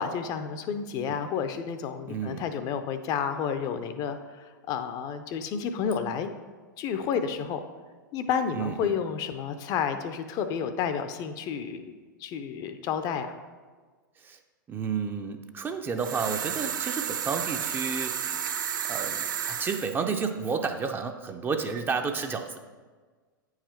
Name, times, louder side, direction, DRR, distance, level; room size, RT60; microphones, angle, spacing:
voice 1, 0.0-6.3 6.8-7.6 8.1-11.9 12.2-13.4, left 7 dB, 35° left, 9 dB, 0.5 m, -31 dB
voice 2, 2.1-2.5 8.5-9.0 14.2-14.4 14.7-18.2 18.9-22.6, right 5 dB, 20° right, 6 dB, 0.5 m, -31 dB
sound 1, 16.0-19.9, right 8 dB, 70° right, 0.5 m, -32 dB
8.7 x 4.8 x 4.5 m, 1.4 s
figure-of-eight pair, 95°, 11 cm